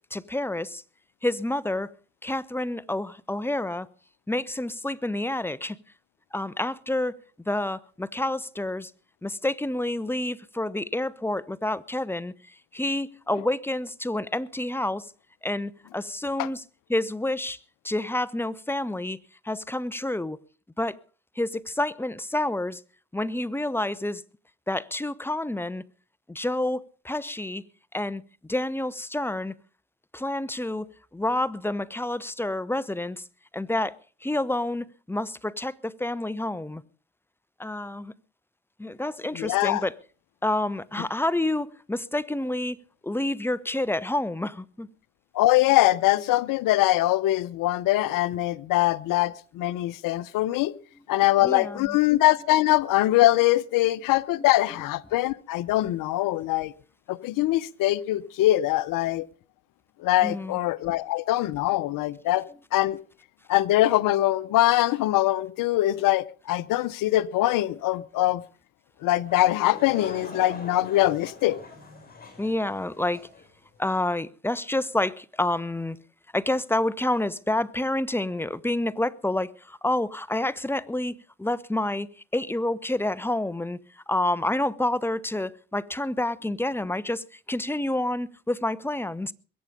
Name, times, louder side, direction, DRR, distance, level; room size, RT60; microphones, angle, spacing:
voice 1, 0.1-0.8 1.2-1.9 2.2-3.9 4.3-5.8 6.3-7.2 7.5-8.9 9.2-15.1 15.4-16.6 16.9-17.6 17.8-19.2 19.4-20.4 20.8-21.0 21.4-22.8 23.1-24.2 24.7-25.8 26.3-27.6 27.9-29.5 30.1-33.2 33.5-36.8 37.6-38.1 38.8-40.0 40.4-42.8 43.0-44.9 51.4-52.0 54.4-54.5 60.2-60.6 72.4-73.2 73.8-76.0 76.3-82.1 82.3-89.3, left 1 dB, 5° left, 0.8 m, -28 dB
voice 2, 39.3-39.8 45.3-50.7 51.1-56.7 57.1-59.3 60.0-62.5 62.7-63.0 63.5-68.4 69.0-71.6, left 15 dB, 70° left, 0.8 m, -23 dB
Laughter / Crowd, 69.3-73.5, left 3 dB, 25° left, 6.1 m, -42 dB
22.0 x 8.5 x 5.3 m
hypercardioid pair, 60°, 34 cm